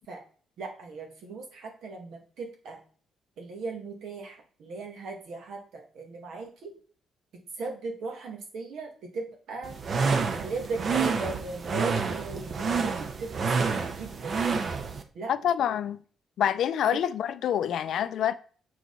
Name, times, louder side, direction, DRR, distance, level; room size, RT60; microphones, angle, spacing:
voice 1, 0.6-2.8 3.4-6.7 7.3-9.8 10.2-14.4 15.1-15.3 16.9-17.0 17.6-17.7, right 3 dB, 75° right, 2.0 m, -38 dB
sound 1, 9.6-15.0, right 5 dB, 50° right, 0.8 m, -28 dB
voice 2, 15.3-16.0 16.4-18.4, left 10 dB, 70° left, 0.4 m, -26 dB
6.3 x 4.6 x 4.0 m
cardioid pair, 90°, 0 cm